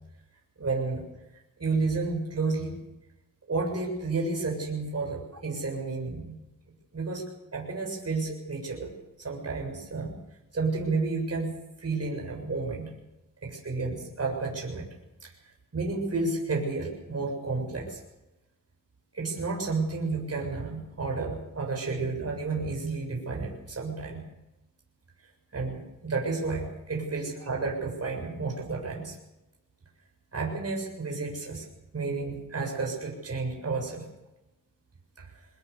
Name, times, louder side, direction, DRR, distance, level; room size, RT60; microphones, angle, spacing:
voice 1, 0.6-1.0 1.6-2.8 3.5-6.3 6.9-7.2 7.5-8.9 9.2-10.1 10.5-11.5 11.8-12.9 13.4-14.8 15.2-15.3 15.7-18.0 19.1-24.2 25.5-29.2 30.3-31.6 31.9-34.0 35.2-35.3, right 3 dB, 50° right, 0 dB, 7.4 m, -31 dB
24.5 x 20.0 x 7.0 m, 0.96 s
wide cardioid pair, 100°, 33 cm